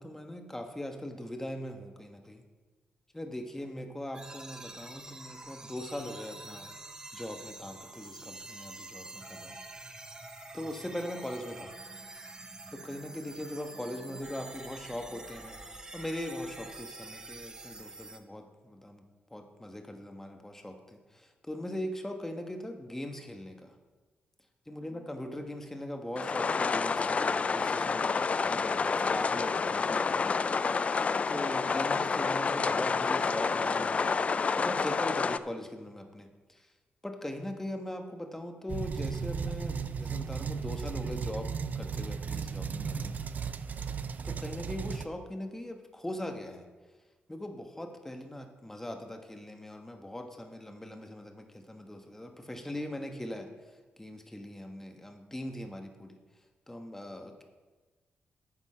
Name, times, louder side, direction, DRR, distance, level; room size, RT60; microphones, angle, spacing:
voice 1, 0.0-2.4 3.1-6.7 7.1-9.6 10.5-11.7 12.7-15.6 15.9-19.0 19.3-23.7 24.7-28.1 28.4-34.1 34.5-36.7 37.0-41.5 41.7-43.2 44.2-46.6 47.3-53.5 54.0-56.2 56.7-57.4, left 1 dB, 10° left, 4 dB, 1.1 m, -40 dB
sound 1, 4.1-18.2, right 2 dB, 20° right, 0.8 m, -46 dB
sound 2, 26.2-35.4, left 5 dB, 35° left, 0.3 m, -29 dB
sound 3, 38.7-45.1, right 6 dB, 45° right, 0.5 m, -35 dB
9.8 x 7.1 x 5.6 m, 1.3 s
cardioid pair, 105°, 4 cm